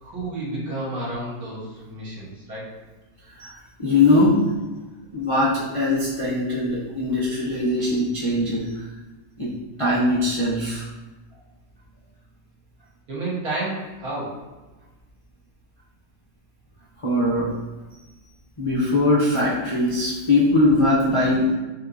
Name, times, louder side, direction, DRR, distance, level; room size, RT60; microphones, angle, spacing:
voice 1, 0.0-2.8 13.1-14.3, right 2 dB, 60° right, -8 dB, 2.1 m, -31 dB
voice 2, 3.3-4.5 5.1-8.9 9.4-9.5 9.8-10.9 17.0-17.6 18.6-21.5, left 2 dB, 55° left, -8 dB, 0.3 m, -21 dB
7.1 x 2.8 x 2.6 m, 1.1 s
omnidirectional pair, 1.8 m